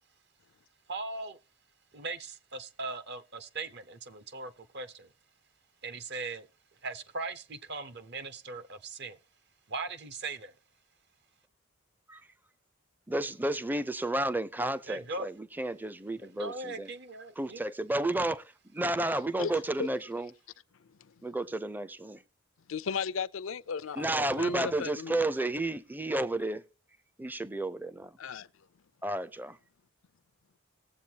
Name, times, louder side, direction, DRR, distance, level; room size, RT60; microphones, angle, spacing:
voice 1, 0.9-1.4 1.9-5.1 5.8-6.5 6.8-9.2 9.7-10.5 14.9-15.3 16.2-17.6 24.4-24.8, right 3 dB, 50° right, 0.8 m, -39 dB
voice 2, 13.1-16.9 17.4-18.4 18.7-20.3 21.2-22.2 24.0-26.6 27.2-28.1 29.0-29.6, right 1 dB, 10° right, 0.5 m, -31 dB
voice 3, 19.4-19.9 22.7-25.2 28.2-28.5, left 6 dB, 65° left, 0.5 m, -35 dB
19.5 x 7.8 x 2.8 m
head